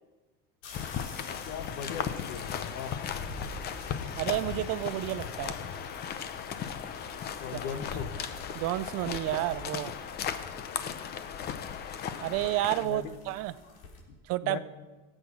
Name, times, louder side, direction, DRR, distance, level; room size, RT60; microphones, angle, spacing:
sound 1, 0.6-14.0, left 2 dB, 85° left, 3.7 m, -49 dB
sound 2, 0.7-12.8, left 8 dB, 30° left, 0.7 m, -36 dB
voice 1, 1.5-3.2 7.4-8.1 12.8-13.1 14.1-14.2 14.4-14.6, left 7 dB, 60° left, 11 dB, 1.1 m, -39 dB
voice 2, 4.2-5.6 8.5-9.9 12.2-13.5 14.3-14.6, right 15 dB, 50° right, 16 dB, 0.4 m, -30 dB
18.0 x 8.0 x 5.9 m, 1.2 s
cardioid pair, 165°, 32 cm